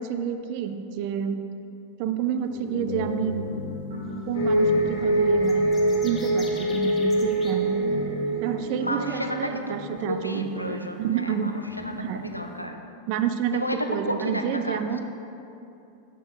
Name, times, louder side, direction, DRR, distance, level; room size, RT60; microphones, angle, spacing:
voice 1, 0.0-1.4 2.0-3.5 4.3-5.7 6.0-7.8 8.4-11.5 11.9-12.2 13.1-15.0, right 8 dB, 45° right, 8 dB, 0.4 m, -29 dB
sound 1, 2.3-12.6, left 1 dB, 60° right, 1.3 m, -38 dB
sound 2, 4.3-9.3, right 1 dB, 60° left, 1.2 m, -24 dB
sound 3, 5.4-7.5, left 3 dB, 20° left, 0.8 m, -43 dB
voice 2, 8.8-12.8 13.5-14.9, left 1 dB, 85° left, 5 dB, 0.4 m, -32 dB
6.7 x 6.1 x 3.1 m, 2.7 s
figure-of-eight pair, 90°, 0 cm